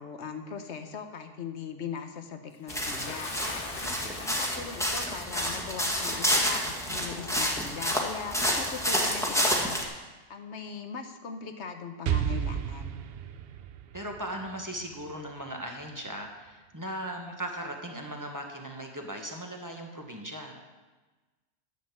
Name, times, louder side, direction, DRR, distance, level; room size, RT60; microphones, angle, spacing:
voice 1, 0.0-3.3 4.3-9.9 10.3-13.0, left 6 dB, 85° left, 6 dB, 1.3 m, -40 dB
Bathtub (filling or washing) / Splash splatter, 2.7-5.3 6.2-6.3 7.3-7.4, left 3 dB, 55° left, 1.3 m, -41 dB
sound 1, 2.7-9.8, equal, 5° left, 1.5 m, -29 dB
voice 2, 3.8-4.4 13.9-20.6, equal, 20° right, 1 dB, 1.3 m, -38 dB
Explosion, 12.1-15.8, right 9 dB, 65° right, 0.8 m, -33 dB
11.0 x 7.6 x 7.4 m, 1.2 s
omnidirectional pair, 1.1 m